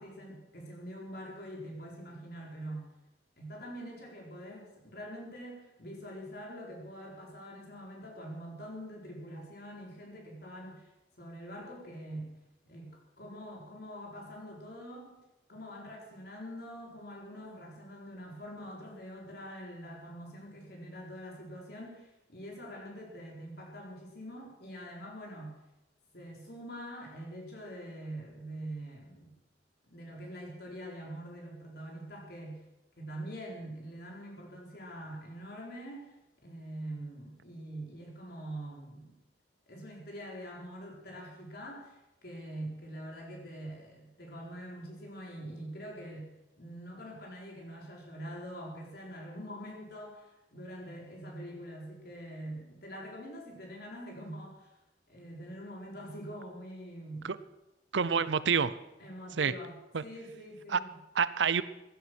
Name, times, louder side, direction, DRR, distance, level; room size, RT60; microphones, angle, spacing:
voice 1, 0.0-2.9 3.4-10.9 11.2-12.3 12.6-15.2 15.5-25.6 26.1-29.3 29.9-32.6 33.0-36.2 36.4-39.2 39.7-54.7 55.1-57.3 59.0-59.7 60.0-61.0, equal, 60° left, -1 dB, 4.2 m, -44 dB
voice 2, 57.9-58.7 59.4-59.5 59.9-60.0 60.7-60.8 61.2-61.6, right 6 dB, 75° right, 16 dB, 0.6 m, -27 dB
16.0 x 11.5 x 6.2 m, 0.94 s
head